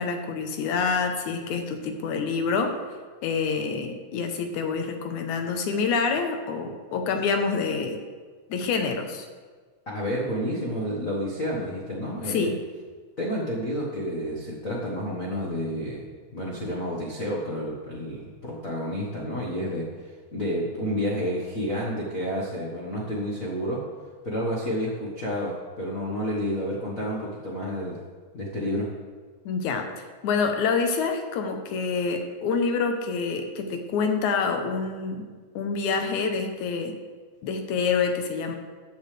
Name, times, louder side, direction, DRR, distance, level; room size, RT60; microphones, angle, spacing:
voice 1, 0.0-2.8 3.2-8.0 8.5-9.3 12.2-12.6 29.5-29.9 30.2-35.2 35.6-37.0 37.4-38.6, left 5 dB, 80° left, 5 dB, 2.4 m, -27 dB
voice 2, 9.9-12.5 13.2-16.0 16.3-23.9 24.2-28.0 28.3-28.9, equal, 40° left, -5 dB, 1.4 m, -30 dB
15.0 x 9.3 x 3.4 m, 1.5 s
omnidirectional pair, 3.4 m